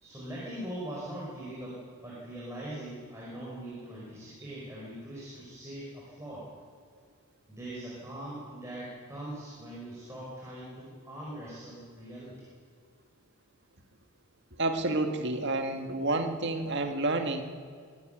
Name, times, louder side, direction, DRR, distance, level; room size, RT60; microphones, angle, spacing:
voice 1, 0.0-6.4 7.5-12.4, right 1 dB, 15° right, -7 dB, 5.1 m, -41 dB
voice 2, 14.6-17.4, right 2 dB, 50° right, 5 dB, 1.9 m, -29 dB
24.0 x 12.5 x 9.2 m, 2.1 s
head